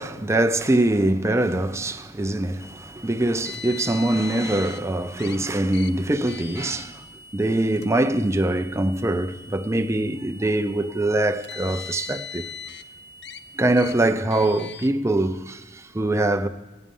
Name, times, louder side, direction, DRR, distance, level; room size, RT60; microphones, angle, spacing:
voice 1, 0.0-7.0 7.3-12.5 13.5-16.5, right 1 dB, 15° right, 0.5 m, -23 dB
sound 1, 2.6-14.0, right 1 dB, 25° left, 1.0 m, -47 dB
Car, 3.4-4.8 5.2-5.4 5.7-5.9 6.3-6.9 7.7-7.9 8.8-8.9 11.2-12.8 13.2-13.4 13.8-13.9 14.3-14.9, left 7 dB, 60° left, 0.6 m, -38 dB
18.5 x 8.8 x 5.4 m
head